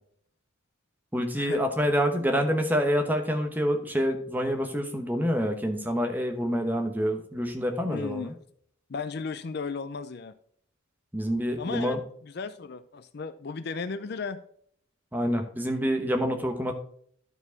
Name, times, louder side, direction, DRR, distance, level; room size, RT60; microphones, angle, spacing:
voice 1, 1.1-8.3 11.1-12.0 15.1-16.7, equal, 10° right, 5 dB, 1.0 m, -27 dB
voice 2, 7.9-8.3 8.9-10.3 11.6-14.4, left 4 dB, 50° left, 11 dB, 0.5 m, -35 dB
12.0 x 4.6 x 4.0 m, 0.62 s
head